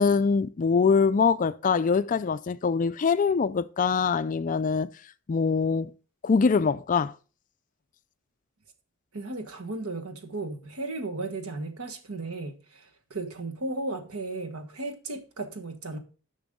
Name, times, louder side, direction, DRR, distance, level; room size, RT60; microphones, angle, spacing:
voice 1, 0.0-4.9 5.3-5.9 6.2-7.1, left 5 dB, 35° left, 0.3 m, -23 dB
voice 2, 9.1-16.0, right 2 dB, 80° right, 1.4 m, -35 dB
10.5 x 6.1 x 3.6 m
head